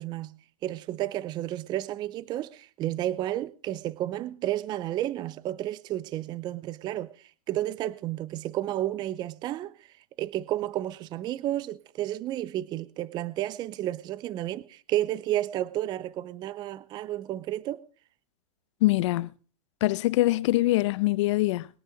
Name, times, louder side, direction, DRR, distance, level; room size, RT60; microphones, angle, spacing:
voice 1, 0.0-7.1 7.5-9.7 10.2-17.9, right 13 dB, 25° right, 0.6 m, -31 dB
voice 2, 18.8-19.3 19.8-21.7, left 18 dB, 50° left, 0.7 m, -23 dB
21.0 x 10.5 x 5.1 m
hypercardioid pair, 140°, 19 cm